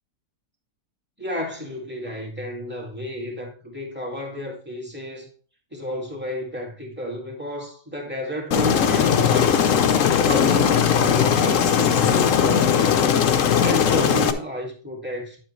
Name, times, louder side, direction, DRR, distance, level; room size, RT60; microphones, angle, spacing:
voice 1, 1.2-5.3 5.7-9.7 10.2-12.7 13.6-15.4, equal, 5° right, 2.0 m, -31 dB
Aircraft, 8.5-14.3, left 7 dB, 60° left, 1.1 m, -19 dB
10.0 x 7.4 x 3.2 m
omnidirectional pair, 1.7 m